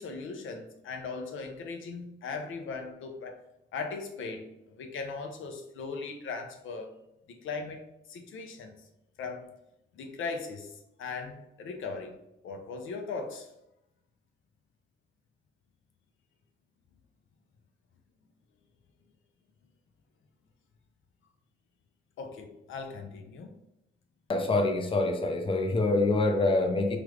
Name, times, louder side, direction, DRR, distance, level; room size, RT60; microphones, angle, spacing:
voice 1, 0.0-3.4 3.7-6.9 7.3-8.7 9.2-9.5 9.9-10.7 11.0-12.2 12.4-13.5 22.2-23.5, left 4 dB, 75° left, 4 dB, 0.6 m, -38 dB
voice 2, 24.3-27.0, left 2 dB, 25° left, 4 dB, 0.5 m, -25 dB
3.2 x 2.4 x 3.1 m, 0.84 s
cardioid pair, 85°, 21 cm